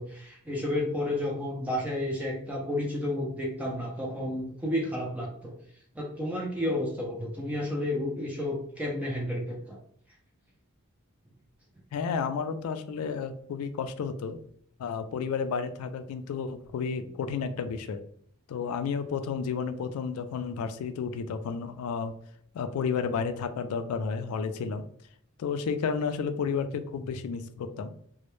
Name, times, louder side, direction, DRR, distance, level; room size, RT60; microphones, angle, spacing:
voice 1, 0.0-5.6 6.0-9.8, left 1 dB, 5° right, -2 dB, 0.4 m, -31 dB
voice 2, 11.9-14.4 14.8-18.0 18.5-22.1 22.5-24.8 25.4-27.9, left 5 dB, 80° left, 14 dB, 0.3 m, -31 dB
2.1 x 2.0 x 2.9 m, 0.63 s
head